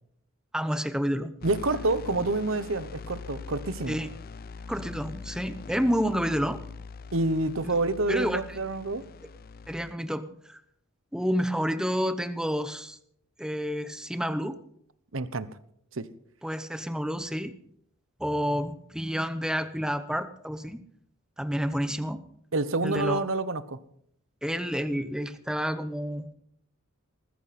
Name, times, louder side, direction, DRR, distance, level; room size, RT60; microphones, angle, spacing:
voice 1, 0.5-1.3 3.9-4.1 4.7-6.6 7.6-7.7 8.1-8.6 9.7-10.6 11.1-13.0 13.4-14.6 16.4-17.5 18.2-20.8 21.4-22.2 22.8-23.2 24.4-26.3, equal, 5° right, 10 dB, 1.0 m, -29 dB
sound 1, 1.4-9.9, left 4 dB, 45° left, 0.6 m, -42 dB
voice 2, 1.4-4.0 7.1-9.0 15.1-15.5 15.9-16.1 22.5-23.8, right 2 dB, 70° right, 14 dB, 1.0 m, -28 dB
20.0 x 14.5 x 4.3 m, 0.67 s
head